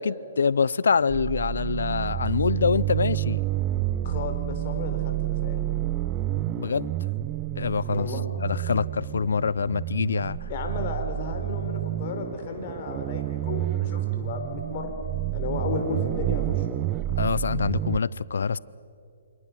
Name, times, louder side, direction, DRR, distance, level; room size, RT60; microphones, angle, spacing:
voice 1, 0.0-3.4 6.6-6.9 7.6-8.1 8.4-10.5 17.2-18.6, left 5 dB, 65° left, 22 dB, 0.6 m, -25 dB
sound 1, 1.1-18.0, right 14 dB, 25° right, 0.6 m, -29 dB
voice 2, 4.0-5.7 7.9-8.2 10.5-14.9 15.3-16.7, left 5 dB, 40° left, 4 dB, 4.5 m, -34 dB
28.0 x 27.5 x 6.2 m, 2.7 s
figure-of-eight pair, 130°, 0 cm